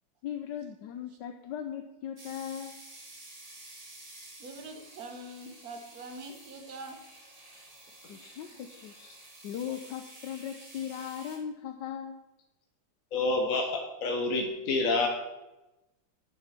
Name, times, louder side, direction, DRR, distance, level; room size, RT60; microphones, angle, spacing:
voice 1, 0.2-2.8 8.1-8.9 9.4-12.2, left 9 dB, 75° left, 6 dB, 1.2 m, -38 dB
sound 1, 2.2-11.4, right 1 dB, 20° right, 1.8 m, -51 dB
voice 2, 4.4-7.0 8.5-8.6, right 2 dB, 55° right, 5 dB, 1.7 m, -44 dB
voice 3, 13.1-15.1, left 3 dB, 50° left, 2 dB, 1.3 m, -28 dB
9.7 x 6.9 x 5.8 m, 0.99 s
omnidirectional pair, 2.1 m